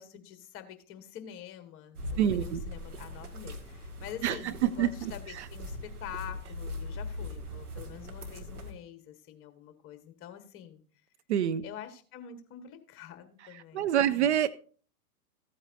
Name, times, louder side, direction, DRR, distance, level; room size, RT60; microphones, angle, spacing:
voice 1, 0.0-10.8 11.6-14.3, left 10 dB, 30° left, 9 dB, 1.4 m, -46 dB
sound 1, 2.0-8.7, left 1 dB, 80° right, 2.1 m, -40 dB
voice 2, 2.2-2.6 4.2-5.5 11.3-11.6 13.5-14.5, right 10 dB, 50° right, 14 dB, 0.5 m, -27 dB
15.0 x 8.8 x 2.6 m, 0.41 s
hypercardioid pair, 110°, 45 cm